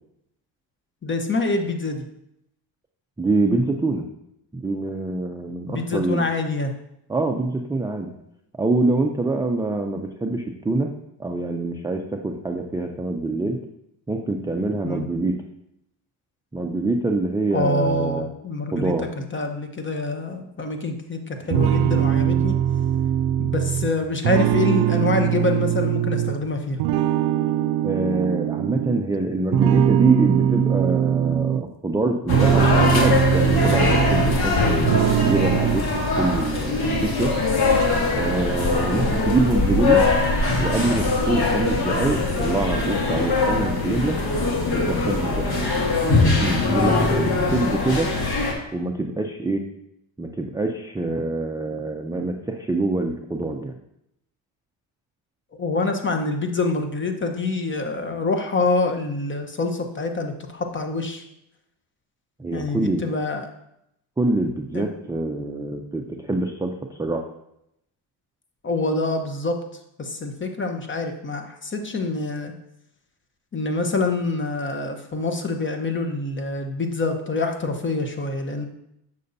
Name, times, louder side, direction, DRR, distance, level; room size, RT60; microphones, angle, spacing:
voice 1, 1.0-2.0 5.7-6.7 14.8-15.0 17.5-18.9 19.3-22.5 23.4-26.8 55.6-61.2 62.5-63.5 64.7-64.9 68.6-69.5 70.0-72.5 73.5-78.7, left 3 dB, 25° left, 5 dB, 0.9 m, -26 dB
voice 2, 3.2-4.0 4.5-6.2 7.1-8.1 8.6-10.9 11.2-13.6 14.1-15.4 16.5-18.3 18.7-19.1 27.8-37.4 38.1-40.1 40.6-44.2 44.7-45.5 46.4-48.1 48.7-49.6 50.2-53.8 62.4-63.1 64.2-67.2, right 2 dB, 10° right, 3 dB, 0.4 m, -25 dB
sound 1, 21.5-26.4 26.8-29.1 29.5-31.7 32.1-34.5 34.8-35.8, right 10 dB, 60° right, 0.5 m, -21 dB
sound 2, 32.3-48.5, left 3 dB, 50° left, 1.7 m, -22 dB
6.9 x 6.3 x 2.7 m, 0.80 s
supercardioid pair, 85°, 46 cm